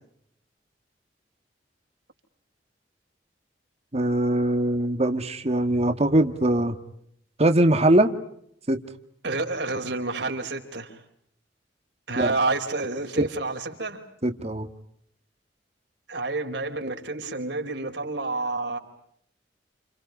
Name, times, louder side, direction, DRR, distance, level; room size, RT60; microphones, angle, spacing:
voice 1, 3.9-6.8 7.4-8.2 8.7-8.8 12.2-12.3 13.2-13.3 14.2-14.7, right 1 dB, 35° right, 1.8 m, -21 dB
voice 2, 9.2-11.0 12.1-14.0 16.1-18.8, right 3 dB, 70° right, 4.6 m, -29 dB
30.0 x 29.5 x 5.4 m
head